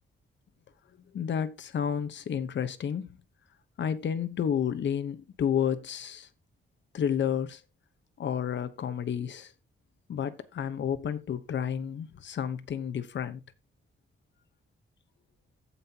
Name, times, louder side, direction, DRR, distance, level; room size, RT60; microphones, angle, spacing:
voice 1, 1.1-3.1 3.8-6.3 6.9-7.6 8.2-9.5 10.1-13.4, left 8 dB, 65° left, 1.0 m, -31 dB
15.0 x 5.6 x 2.9 m
wide cardioid pair, 160°, 20 cm